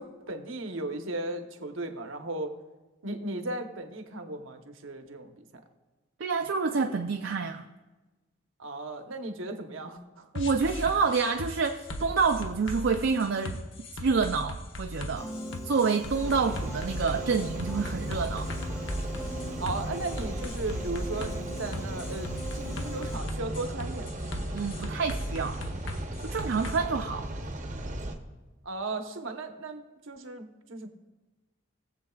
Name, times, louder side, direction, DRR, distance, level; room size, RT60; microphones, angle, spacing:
voice 1, 0.0-2.5 3.0-5.4 8.6-10.3 19.6-24.3 28.6-30.9, right 2 dB, 80° right, 6 dB, 1.0 m, -36 dB
voice 2, 6.2-7.7 10.3-13.6 13.9-15.3 15.6-18.5 24.5-25.6 26.2-27.3, right 5 dB, 65° right, 4 dB, 0.4 m, -28 dB
sound 1, 10.4-26.8, left 1 dB, 70° left, 0.9 m, -38 dB
Piano, 15.2-23.2, equal, 15° left, 1.4 m, -42 dB
sound 2, 16.2-28.1, right 1 dB, 35° right, 0.8 m, -36 dB
20.5 x 7.6 x 2.3 m, 1.2 s
head